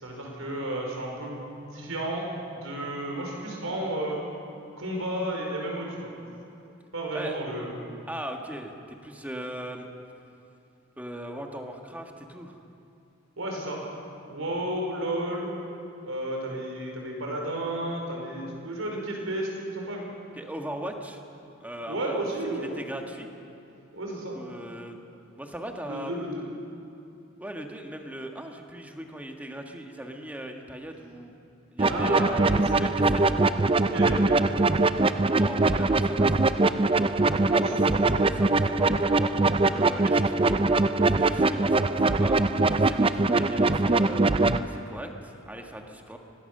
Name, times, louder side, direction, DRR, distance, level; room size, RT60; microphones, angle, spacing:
voice 1, 0.0-1.4 1.6-4.2 4.8-6.1 6.9-7.9 13.4-13.8 14.3-15.5 16.0-20.0 21.8-22.8 23.9-24.4 25.9-26.5 31.9-32.8 33.8-34.5 37.5-38.0, right 1 dB, 85° right, 0 dB, 5.0 m, -32 dB
voice 2, 8.1-9.9 11.0-12.6 20.3-21.2 21.6-22.3 22.6-23.3 24.3-25.0 25.4-26.1 27.4-31.3 31.7-33.2 35.3-36.8 37.5-37.8 38.3-39.4 39.6-40.7 41.1-44.2 44.6-46.2, right 1 dB, 10° right, 3 dB, 1.6 m, -39 dB
sound 1, 31.8-44.6, right 3 dB, 25° right, 0.5 m, -22 dB
24.0 x 18.0 x 6.8 m, 2.8 s
head